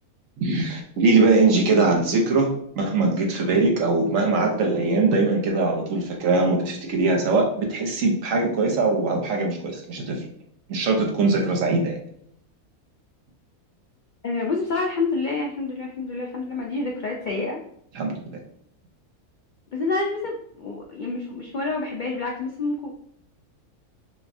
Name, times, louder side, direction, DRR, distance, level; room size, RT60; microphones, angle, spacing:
voice 1, 0.4-2.5 2.8-10.3 10.7-12.0 17.9-18.4, right 3 dB, 65° right, 1 dB, 1.2 m, -21 dB
voice 2, 14.2-17.6 19.7-23.1, left 3 dB, 75° left, 0 dB, 0.4 m, -28 dB
6.0 x 2.3 x 2.6 m, 0.68 s
omnidirectional pair, 1.5 m